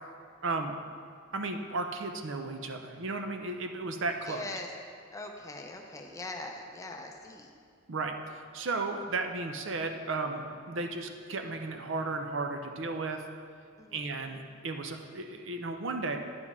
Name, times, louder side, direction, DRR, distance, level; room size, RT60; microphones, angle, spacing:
voice 1, 0.4-0.7 1.3-4.4 7.9-8.1 8.5-13.2 13.9-16.2, right 3 dB, 65° right, 5 dB, 0.6 m, -34 dB
voice 2, 4.3-4.7 5.1-7.5 13.8-14.4, left 2 dB, 15° left, 2 dB, 0.6 m, -42 dB
9.6 x 7.5 x 3.6 m, 2.2 s
head